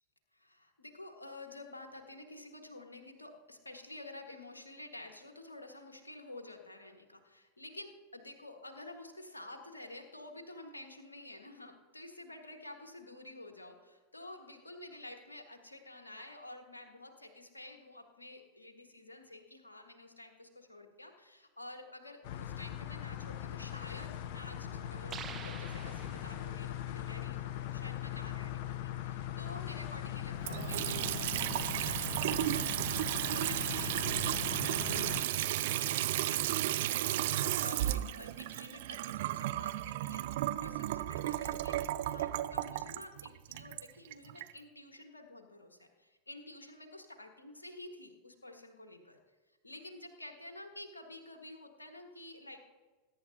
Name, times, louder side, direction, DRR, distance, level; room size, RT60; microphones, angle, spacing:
voice 1, 0.3-49.2 49.6-52.6, left 2 dB, 80° left, 4 dB, 1.6 m, -50 dB
sound 1, 22.2-35.2, left 11 dB, 50° left, 0.7 m, -40 dB
sound 2, 25.1-26.7, right 8 dB, 25° right, 0.8 m, -47 dB
Water tap faucet / Sink (filling or washing) / Trickle dribble, 30.4-44.5, right 14 dB, 55° right, 0.5 m, -34 dB
21.0 x 10.5 x 2.8 m, 1.3 s
figure-of-eight pair, 90°, 0 cm